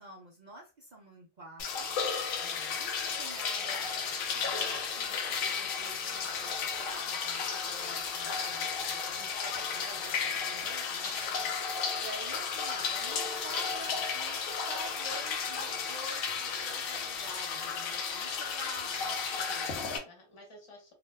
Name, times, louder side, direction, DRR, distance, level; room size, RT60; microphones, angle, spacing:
voice 1, 0.0-1.9 2.8-3.9 4.3-8.7 9.1-11.2 12.0-14.4 14.7-19.9, right 1 dB, 50° right, -1 dB, 0.5 m, -48 dB
sound 1, 1.6-20.0, left 6 dB, 80° left, 1.1 m, -33 dB
voice 2, 2.4-2.8 8.9-9.2 11.2-11.6 20.0-20.9, left 2 dB, 25° left, 1 dB, 0.9 m, -54 dB
2.9 x 2.1 x 3.3 m, 0.32 s
omnidirectional pair, 1.4 m